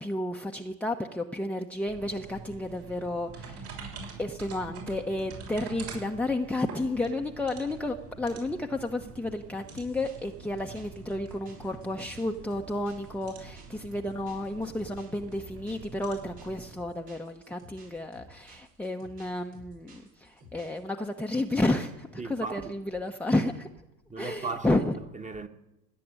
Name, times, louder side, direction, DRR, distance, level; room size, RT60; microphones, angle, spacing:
voice 1, 0.0-3.7 4.2-23.7 24.2-25.0, left 1 dB, 5° left, 0.9 m, -31 dB
sound 1, 1.9-16.7, right 5 dB, 65° right, 6.6 m, -46 dB
sound 2, 9.7-20.9, left 1 dB, 85° right, 7.9 m, -53 dB
voice 2, 22.2-23.0 24.1-25.5, right 4 dB, 15° right, 1.5 m, -38 dB
17.5 x 7.8 x 10.0 m
hypercardioid pair, 80°, 48 cm